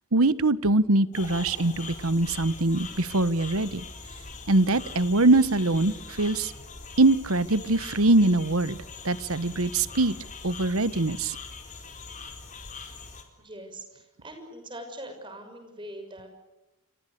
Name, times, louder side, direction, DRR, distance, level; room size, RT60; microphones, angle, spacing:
voice 1, 0.1-3.8 4.5-6.5 7.0-8.8 9.0-10.1 10.4-11.4, right 2 dB, 80° right, 16 dB, 1.2 m, -23 dB
sound 1, 1.1-13.2, left 4 dB, 35° left, 4.3 m, -42 dB
voice 2, 13.4-16.3, right 1 dB, 20° right, 5 dB, 6.5 m, -42 dB
30.0 x 24.5 x 6.8 m, 0.98 s
head